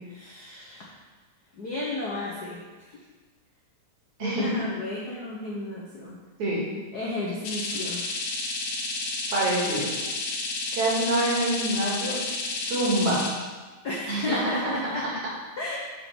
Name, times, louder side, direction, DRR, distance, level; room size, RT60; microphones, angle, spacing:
voice 1, 0.1-0.9 1.6-3.0 4.2-6.2 6.9-8.1 13.8-15.1 15.6-15.8, left 2 dB, 75° left, -4 dB, 0.9 m, -33 dB
sound 1, 7.4-13.3, left 3 dB, 60° left, 1.4 m, -31 dB
voice 2, 9.3-9.9 10.7-12.2 12.5-13.2 14.1-14.4, right 1 dB, 75° right, -6 dB, 3.7 m, -26 dB
6.6 x 5.2 x 6.1 m, 1.3 s
omnidirectional pair, 3.3 m